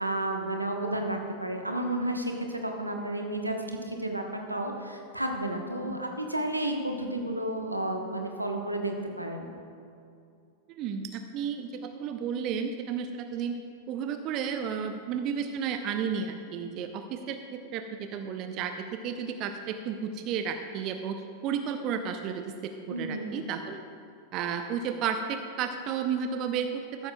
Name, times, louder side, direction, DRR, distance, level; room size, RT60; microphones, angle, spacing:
voice 1, 0.0-9.4 22.9-23.3, right 1 dB, 85° right, 3 dB, 1.0 m, -32 dB
voice 2, 10.8-13.5 13.9-23.8 24.3-27.1, right 7 dB, 40° right, 7 dB, 0.6 m, -32 dB
14.0 x 12.5 x 2.3 m, 2.5 s
figure-of-eight pair, 90°, 0 cm